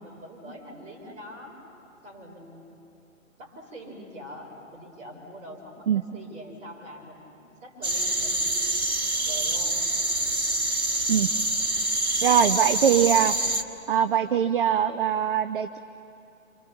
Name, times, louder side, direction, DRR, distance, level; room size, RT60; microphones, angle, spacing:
voice 1, 0.0-1.6 2.0-2.6 3.4-7.3 7.6-8.8 9.2-9.8, equal, 15° right, -2 dB, 4.8 m, -43 dB
sound 1, 7.8-13.6, right 1 dB, 90° right, 1.5 m, -26 dB
voice 2, 12.2-13.3 13.9-15.8, right 9 dB, 40° right, 10 dB, 0.6 m, -22 dB
28.5 x 26.5 x 7.1 m, 2.9 s
figure-of-eight pair, 130°, 41 cm